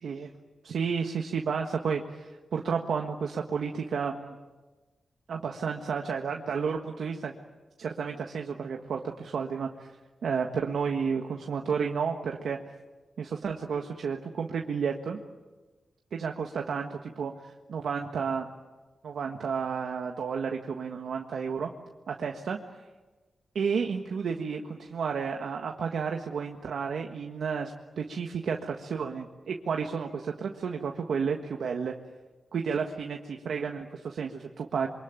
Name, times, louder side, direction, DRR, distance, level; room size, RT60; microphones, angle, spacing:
voice 1, 0.6-4.4 5.3-7.3 7.8-9.9 10.2-12.6 13.2-15.2 16.1-18.5 19.0-21.7 22.1-22.6 23.5-31.9 32.5-34.9, right 6 dB, 85° right, 3 dB, 1.5 m, -31 dB
27.0 x 24.0 x 9.0 m, 1.3 s
wide cardioid pair, 95°, 0 cm